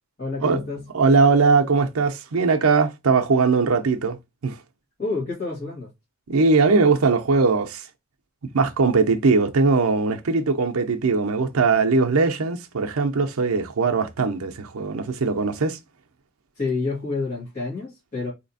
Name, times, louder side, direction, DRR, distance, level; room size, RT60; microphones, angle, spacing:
voice 1, 0.2-0.9 5.0-5.9 16.6-18.3, left 3 dB, 40° left, 2.0 m, -28 dB
voice 2, 0.9-4.2 4.4-4.6 6.3-7.8 8.5-15.8, right 4 dB, 85° right, 0.6 m, -20 dB
4.0 x 2.9 x 2.6 m
head